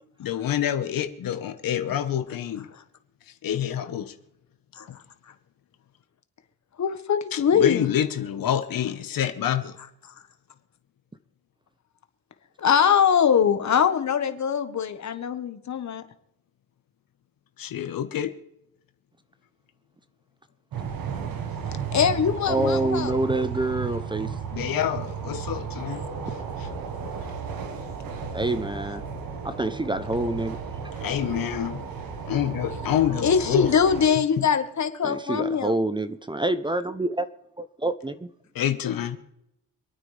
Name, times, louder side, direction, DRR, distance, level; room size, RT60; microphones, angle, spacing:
voice 1, 0.2-2.7 3.4-4.1 4.9-5.0 7.3-9.8 17.6-18.4 21.2-21.3 24.5-26.0 26.6-26.7 31.0-31.8 32.3-33.7 34.1-34.5 38.5-39.2, left 10 dB, 75° left, 1.3 m, -27 dB
voice 2, 6.8-7.9 12.6-16.0 21.9-23.2 33.2-35.7, left 7 dB, 55° left, 1.4 m, -22 dB
sound 1, 20.7-34.1, right 6 dB, 80° right, 1.5 m, -34 dB
voice 3, 22.5-24.4 28.3-29.0 29.4-30.6 35.0-37.3 37.6-38.3, right 2 dB, 15° right, 0.7 m, -27 dB
26.5 x 9.2 x 3.4 m
cardioid pair, 85°, 35 cm